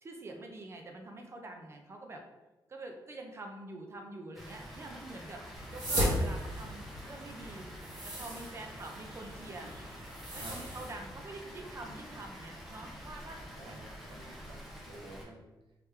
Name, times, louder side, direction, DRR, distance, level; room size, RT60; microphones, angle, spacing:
voice 1, 0.0-2.2 2.7-5.4 5.7-7.7 8.0-9.7 10.3-13.4, right 2 dB, 35° right, 3 dB, 0.6 m, -46 dB
Water, 4.3-15.2, equal, ahead, 0.8 m, -48 dB
sound 1, 5.5-10.9, equal, 55° right, 1.5 m, -36 dB
voice 2, 13.6-15.5, right 2 dB, 85° right, 1 dB, 0.5 m, -50 dB
3.3 x 3.2 x 3.2 m, 1.1 s
wide cardioid pair, 145°, 8 cm